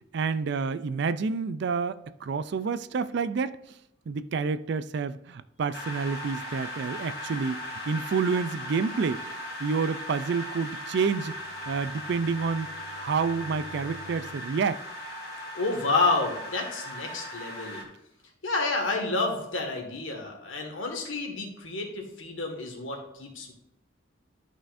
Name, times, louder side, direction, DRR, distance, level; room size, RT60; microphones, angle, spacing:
voice 1, 0.1-3.6 4.1-9.2 9.6-11.3 11.7-12.7 13.0-14.8, right 5 dB, 55° right, 0.4 m, -29 dB
sound 1, 5.7-17.8, equal, 50° left, 1.6 m, -38 dB
Bowed string instrument, 11.0-14.6, left 2 dB, 30° left, 2.2 m, -50 dB
voice 2, 15.5-17.8 18.4-23.5, left 3 dB, 70° left, 1.7 m, -29 dB
12.5 x 5.5 x 2.6 m
head